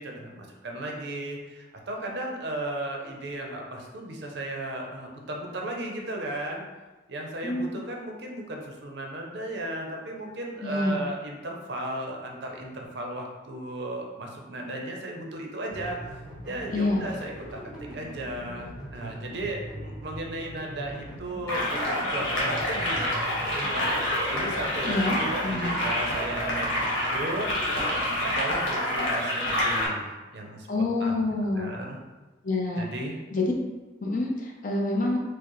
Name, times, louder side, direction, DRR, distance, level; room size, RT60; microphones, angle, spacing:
voice 1, 0.0-6.6 7.1-16.1 16.5-17.4 17.8-23.8 24.3-31.3 31.5-32.0 32.8-33.2, right 1 dB, 55° right, 0 dB, 0.5 m, -35 dB
voice 2, 7.4-7.7 10.6-11.0 16.7-17.1 24.8-25.9 30.7-31.7 32.4-32.8 33.3-33.5 34.0-35.2, left 2 dB, 40° left, -1 dB, 0.6 m, -27 dB
sound 1, 15.7-28.4, equal, 5° right, 0.6 m, -41 dB
sound 2, 21.5-29.9, left 1 dB, 80° left, 1.1 m, -27 dB
4.6 x 2.0 x 3.0 m, 1.2 s
head